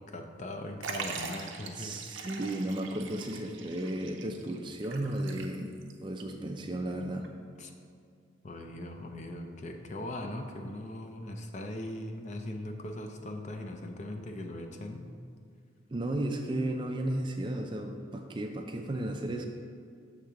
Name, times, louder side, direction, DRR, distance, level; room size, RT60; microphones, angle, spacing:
voice 1, 0.0-2.1 7.6-7.7 8.4-15.1, left 1 dB, 35° left, 4 dB, 0.5 m, -40 dB
Liquid, 0.8-5.9 6.2-6.3 7.2-7.3, right 5 dB, 70° right, 0.6 m, -42 dB
voice 2, 1.8-5.7 6.0-7.3 15.9-19.5, right 1 dB, 25° right, 4 dB, 0.4 m, -34 dB
6.5 x 3.6 x 5.7 m, 2.3 s
head